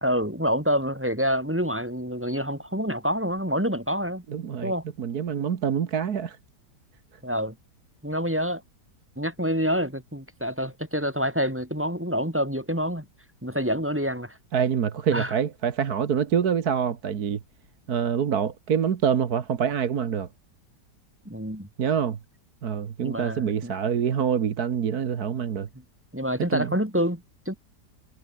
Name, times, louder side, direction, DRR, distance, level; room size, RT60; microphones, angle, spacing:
voice 1, 0.0-4.2 4.6-4.8 7.2-7.5 8.0-8.6 9.2-13.0 13.4-14.4 15.1-15.3 21.2-21.7 23.0-23.7 26.1-27.6, equal, 5° right, 2.7 m, -27 dB
voice 2, 4.3-4.7 5.0-6.4 14.5-17.4 17.9-20.3 21.8-22.2 22.6-25.7 26.5-26.8, right 7 dB, 65° right, 1.8 m, -26 dB
omnidirectional pair, 1.8 m